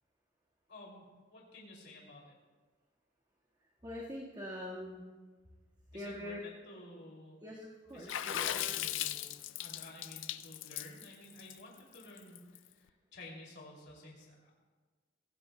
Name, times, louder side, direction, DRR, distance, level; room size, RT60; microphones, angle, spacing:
voice 1, 0.7-2.2 5.9-7.4 7.9-9.2 9.6-14.5, left 1 dB, 60° left, -3 dB, 2.8 m, -52 dB
voice 2, 3.8-5.0 5.9-6.4 7.4-8.9, left 1 dB, 20° right, -5 dB, 1.7 m, -44 dB
Water / Splash splatter, 8.1-12.6, left 12 dB, 75° left, 0.4 m, -38 dB
23.5 x 16.0 x 2.2 m, 1.4 s
head